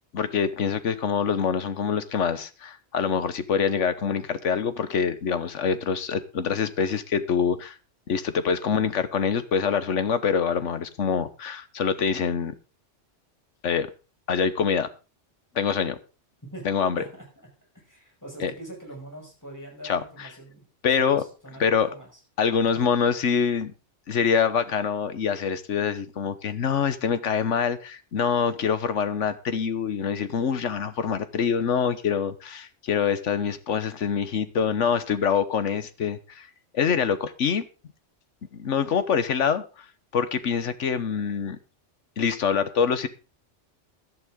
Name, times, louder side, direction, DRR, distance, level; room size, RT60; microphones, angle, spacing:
voice 1, 0.1-7.8 8.1-12.5 13.6-13.9 14.3-14.9 15.5-16.0 16.6-17.0 18.4-18.5 19.8-20.3 20.8-21.2 21.6-21.9 22.4-23.7 24.1-36.5 36.7-37.6 38.5-39.6 40.1-41.6 42.2-43.1, left 6 dB, 75° left, 12 dB, 1.4 m, -25 dB
voice 2, 17.7-22.1, right 1 dB, 15° left, 0 dB, 5.9 m, -43 dB
15.5 x 11.0 x 3.7 m, 0.33 s
omnidirectional pair, 1.3 m